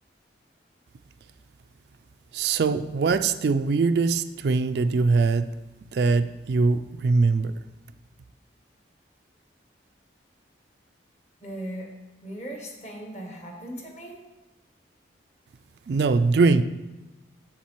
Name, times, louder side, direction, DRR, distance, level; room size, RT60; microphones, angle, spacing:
voice 1, 2.3-5.5 5.9-7.5 15.9-16.6, right 4 dB, 60° right, 10 dB, 0.3 m, -22 dB
voice 2, 11.4-11.9 12.2-14.2, right 1 dB, 35° left, 2 dB, 1.3 m, -38 dB
7.3 x 7.2 x 4.5 m, 1.1 s
head